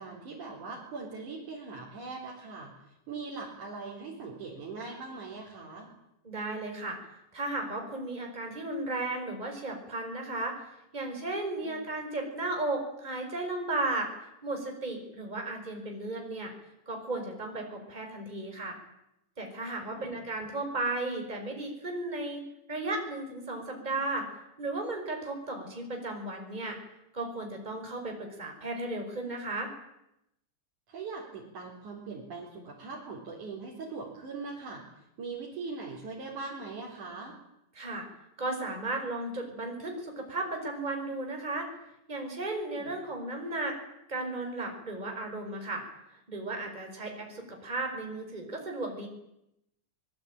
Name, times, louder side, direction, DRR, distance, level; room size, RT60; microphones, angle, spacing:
voice 1, 0.0-2.7 3.1-5.9 11.6-11.9 19.8-20.2 30.9-34.8 35.2-37.4 42.8-42.9, right 4 dB, 75° right, -3 dB, 5.6 m, -41 dB
voice 2, 6.2-7.0 7.3-10.6 10.9-14.1 14.4-16.5 16.9-18.8 19.4-22.4 22.7-24.2 24.6-26.8 27.1-29.7 37.7-38.1 38.4-41.7 42.1-43.8 44.1-45.8 46.3-49.1, right 2 dB, 15° right, 2 dB, 5.0 m, -35 dB
24.5 x 21.5 x 9.0 m, 0.84 s
omnidirectional pair, 3.6 m